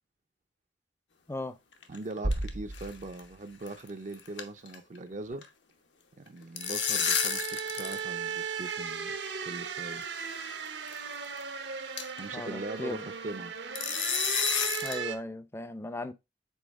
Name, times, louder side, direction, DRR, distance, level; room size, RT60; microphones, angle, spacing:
sound 1, 1.7-2.5 2.7-2.9 3.2-3.3 3.7-3.9 4.1-5.5 6.3-8.0 8.3-8.4 9.3-9.4 10.2-10.4 10.9-11.0 11.4-11.5 12.0-12.3 13.8-15.0, left 7 dB, 75° left, 1.0 m, -31 dB
voice 1, 1.9-5.5 6.2-9.1 9.4-10.0 12.2-13.6, right 2 dB, 45° right, 0.5 m, -41 dB
sound 2, 2.2-4.1, right 1 dB, 85° right, 1.2 m, -35 dB
sound 3, 6.6-15.2, right 6 dB, 70° right, 0.9 m, -37 dB
voice 2, 12.3-13.0 14.8-16.1, left 1 dB, 15° left, 0.5 m, -37 dB
7.1 x 4.1 x 3.5 m
head